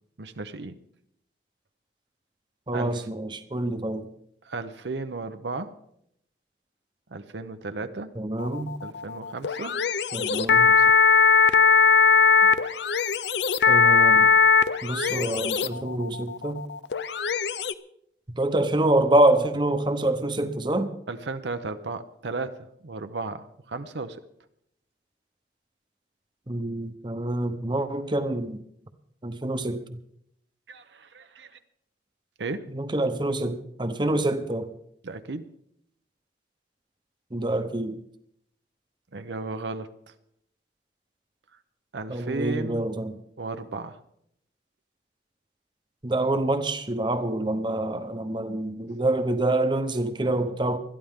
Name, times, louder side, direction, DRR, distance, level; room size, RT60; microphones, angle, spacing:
voice 1, 0.2-0.8 2.7-3.1 4.4-5.7 7.1-8.1 8.8-9.8 10.3-10.9 21.1-24.2 30.7-31.6 32.4-32.7 35.0-35.5 39.1-39.9 41.9-43.0 43.4-44.0, right 3 dB, 80° right, 9 dB, 0.8 m, -34 dB
voice 2, 2.7-4.1 8.2-8.7 10.1-10.7 13.7-14.3 14.8-16.6 18.4-20.9 26.5-28.6 29.2-30.0 32.7-34.7 37.3-38.0 42.1-43.2 46.0-50.8, right 1 dB, 25° right, 8 dB, 0.9 m, -26 dB
sound 1, 8.4-17.7, left 5 dB, 75° left, 0.6 m, -20 dB
21.0 x 13.0 x 3.7 m, 0.73 s
head